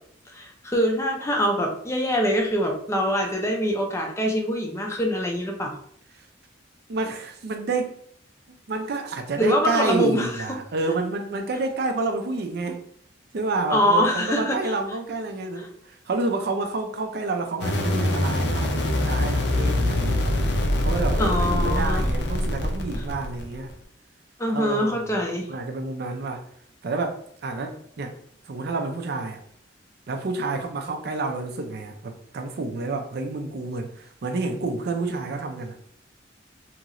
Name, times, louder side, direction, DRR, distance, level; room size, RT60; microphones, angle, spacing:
voice 1, 0.3-5.8 9.4-10.3 13.7-14.7 21.2-22.1 24.4-25.5, equal, 15° left, 0.4 m, -24 dB
voice 2, 6.9-8.0 8.7-12.8 13.3-20.4 20.8-23.7 24.5-24.9 25.5-26.4 26.8-28.1 28.5-29.4 30.1-35.8, right 3 dB, 55° right, 0.4 m, -29 dB
sound 1, 17.6-23.7, left 1 dB, 60° left, 0.6 m, -24 dB
2.9 x 2.9 x 2.5 m
head